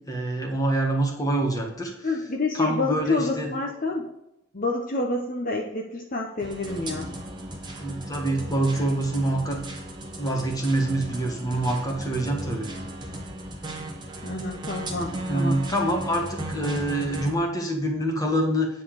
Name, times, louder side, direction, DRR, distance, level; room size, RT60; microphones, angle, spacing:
voice 1, 0.1-2.1 2.5-3.5 7.8-9.6 10.1-12.7 15.2-18.7, right 1 dB, 15° left, 1 dB, 1.6 m, -26 dB
voice 2, 2.0-4.1 4.5-7.1 14.2-15.6, left 2 dB, 40° left, 0 dB, 0.9 m, -28 dB
sound 1, 6.4-17.3, right 1 dB, 20° right, 1.5 m, -36 dB
9.7 x 4.2 x 6.7 m, 0.86 s
head